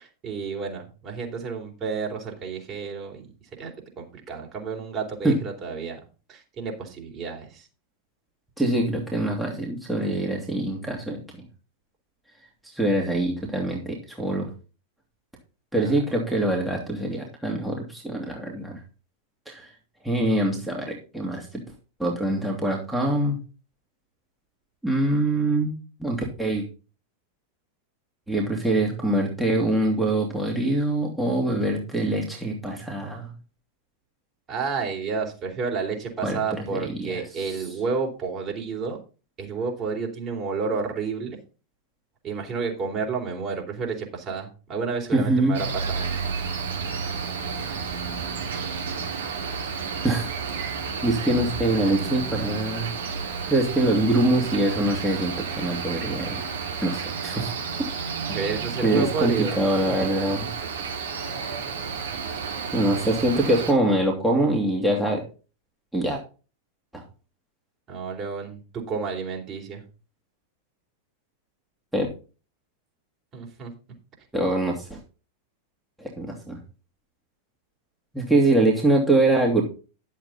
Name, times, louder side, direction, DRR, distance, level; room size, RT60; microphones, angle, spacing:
voice 1, 0.0-3.2 3.6-3.7 4.0-6.0 6.3-7.7 15.8-16.0 34.5-39.0 39.4-41.4 42.2-46.1 58.3-59.6 67.9-69.8 73.3-73.7, right 5 dB, 30° right, 1 dB, 3.6 m, -30 dB
voice 2, 8.6-11.5 12.6-14.5 15.7-18.8 19.5-19.7 20.0-21.6 22.0-23.4 24.8-25.7 26.0-26.7 28.3-33.3 36.2-37.2 45.1-45.7 50.0-50.3 50.5-50.7 51.0-52.9 53.5-56.4 56.8-57.5 58.8-60.5 62.7-65.2 65.9-66.2 66.9-67.0 71.9-72.1 74.3-75.0 76.0-76.6 78.1-79.6, right 1 dB, 5° right, -2 dB, 2.4 m, -24 dB
Cricket, 45.5-63.7, right 5 dB, 65° right, 2.7 m, -31 dB
11.0 x 7.5 x 4.1 m, 0.34 s
figure-of-eight pair, 90°, 0 cm